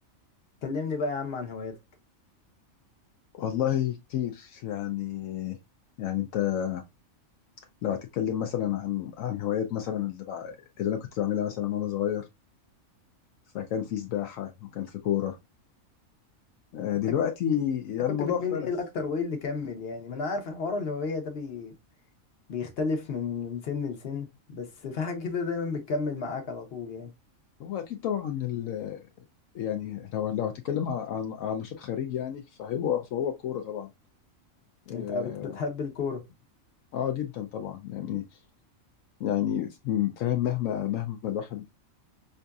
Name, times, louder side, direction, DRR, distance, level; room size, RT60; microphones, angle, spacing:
voice 1, 0.6-1.8 18.1-21.7 22.5-27.1 34.9-36.2, left 4 dB, 50° left, 1.1 m, -32 dB
voice 2, 3.3-5.6 6.0-6.8 7.8-12.3 13.5-15.4 16.7-18.7 27.6-29.0 29.5-33.9 34.9-35.6 36.9-38.4 39.2-41.6, left 10 dB, 75° left, 1.0 m, -30 dB
5.5 x 2.6 x 2.3 m
omnidirectional pair, 1.4 m